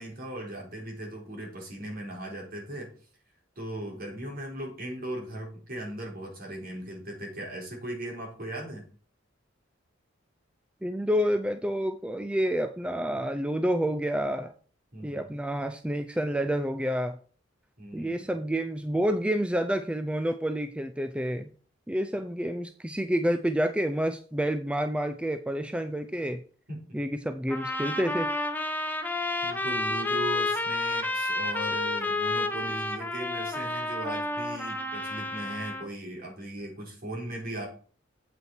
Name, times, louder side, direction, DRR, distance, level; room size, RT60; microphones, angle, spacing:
voice 1, 0.0-2.9 3.6-8.9 14.9-15.3 17.8-18.3 26.7-27.0 29.4-37.7, right 1 dB, 50° right, -1 dB, 4.2 m, -38 dB
voice 2, 10.8-14.5 15.0-17.2 17.9-21.5 21.9-26.4 26.9-28.3, equal, 5° right, 8 dB, 0.4 m, -29 dB
sound 1, 27.5-35.9, left 2 dB, 10° left, 1.0 m, -30 dB
8.1 x 8.1 x 4.5 m, 0.42 s
head